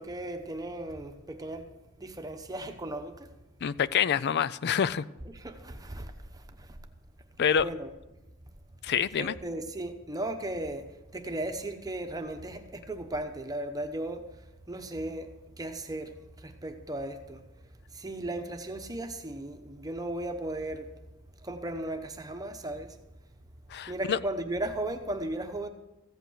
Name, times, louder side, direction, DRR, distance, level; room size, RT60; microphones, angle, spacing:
voice 1, 0.0-3.3 5.2-6.8 7.6-7.9 9.2-20.9 21.3-23.0 23.8-25.7, right 1 dB, 20° right, 1.0 m, -36 dB
voice 2, 3.6-5.1 7.4-7.7 8.8-9.3 23.7-24.2, left 7 dB, 50° left, 0.4 m, -26 dB
15.0 x 8.2 x 6.4 m
head